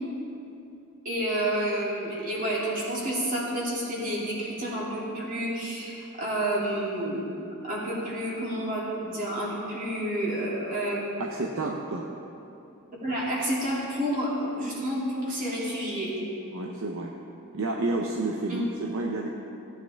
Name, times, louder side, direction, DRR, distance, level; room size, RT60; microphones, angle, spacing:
voice 1, 1.0-11.0 13.0-16.2 18.5-18.6, right 1 dB, 40° right, -6 dB, 2.8 m, -30 dB
voice 2, 11.2-12.1 16.5-17.1 17.5-19.3, right 2 dB, 60° right, 0 dB, 0.7 m, -30 dB
16.5 x 9.2 x 3.4 m, 2.9 s
head